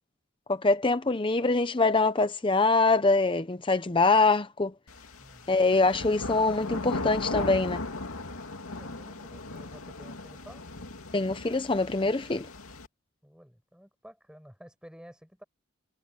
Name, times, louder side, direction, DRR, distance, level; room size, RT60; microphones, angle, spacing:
voice 1, 0.5-4.7 5.5-7.8 11.1-12.5, left 3 dB, 25° left, 0.7 m, -24 dB
sound 1, 4.9-12.9, left 2 dB, 90° left, 2.6 m, -37 dB
voice 2, 5.2-5.6 8.7-10.6 13.2-15.4, equal, 5° right, 6.1 m, -51 dB
head